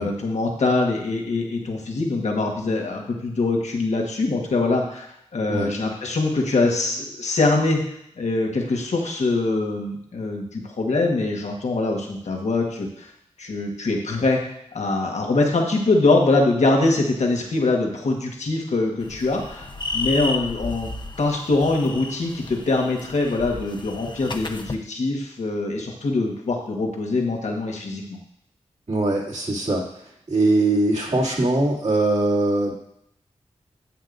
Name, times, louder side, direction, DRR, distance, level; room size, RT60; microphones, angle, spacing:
voice 1, 0.0-5.1 5.3-7.8 8.2-13.1 13.4-19.7 19.9-20.9 21.2-28.2, left 3 dB, 75° left, 1 dB, 1.4 m, -23 dB
sound 1, 19.0-24.7, left 3 dB, 40° left, 0.8 m, -33 dB
voice 2, 28.9-29.8 30.3-32.7, right 2 dB, 65° right, -4 dB, 2.5 m, -21 dB
10.0 x 7.6 x 2.6 m, 0.76 s
cardioid pair, 50°, 12 cm